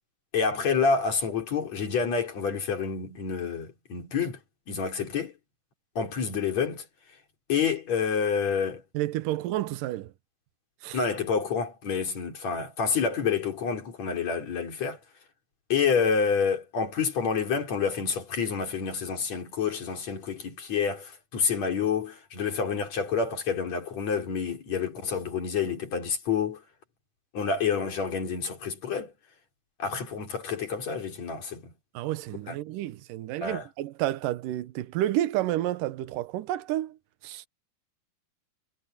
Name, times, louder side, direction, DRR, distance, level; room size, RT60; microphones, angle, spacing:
voice 1, 0.3-4.4 4.7-5.3 6.0-6.9 7.5-8.8 10.9-15.0 15.7-26.6 27.3-29.1 29.8-31.7 32.5-32.6 33.4-33.7, left 6 dB, 50° left, 4.7 m, -28 dB
voice 2, 8.9-10.1 10.8-11.0 31.9-37.0 37.2-37.5, right 14 dB, 75° right, 2.6 m, -30 dB
omnidirectional pair, 4.0 m